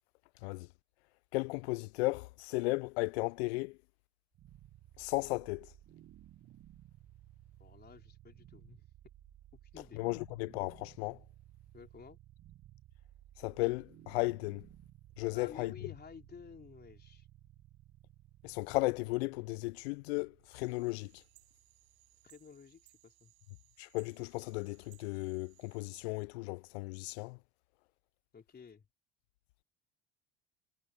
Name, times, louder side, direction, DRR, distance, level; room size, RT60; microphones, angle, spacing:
voice 1, 1.3-3.8 5.0-5.7 9.9-11.2 13.4-14.7 15.2-15.7 18.4-21.2 23.8-27.4, left 24 dB, 80° left, 0.5 m, -35 dB
sound 1, 4.3-23.4, right 13 dB, 50° right, 1.5 m, -59 dB
voice 2, 7.6-8.8 9.7-10.0 11.7-12.2 15.3-17.3 22.2-23.3 28.3-28.9, left 6 dB, 30° left, 3.9 m, -53 dB
sound 2, 20.5-26.0, right 24 dB, 80° right, 6.8 m, -66 dB
hypercardioid pair, 80°, 31 cm